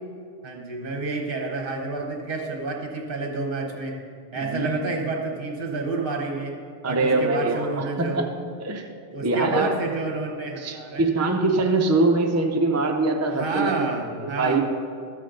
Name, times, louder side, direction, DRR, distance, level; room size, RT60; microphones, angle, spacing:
voice 1, 0.4-4.0 4.3-6.5 6.8-8.2 9.1-11.1 13.3-14.6, right 3 dB, 50° right, 1 dB, 1.3 m, -29 dB
voice 2, 4.4-5.1 6.8-8.3 8.6-8.9 9.2-9.7 10.6-13.9 14.2-14.6, right 2 dB, 25° right, 2 dB, 0.3 m, -23 dB
13.0 x 7.5 x 3.8 m, 2.2 s
omnidirectional pair, 1.3 m